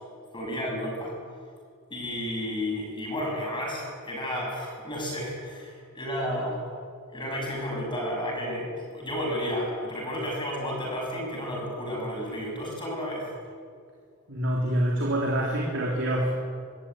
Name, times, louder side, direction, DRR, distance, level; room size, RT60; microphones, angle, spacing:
voice 1, 0.3-1.1 1.9-6.6 7.1-13.2, equal, 20° left, -2 dB, 6.6 m, -32 dB
voice 2, 14.3-16.3, right 1 dB, 60° right, -3 dB, 3.4 m, -26 dB
24.5 x 15.0 x 9.1 m, 2.1 s
head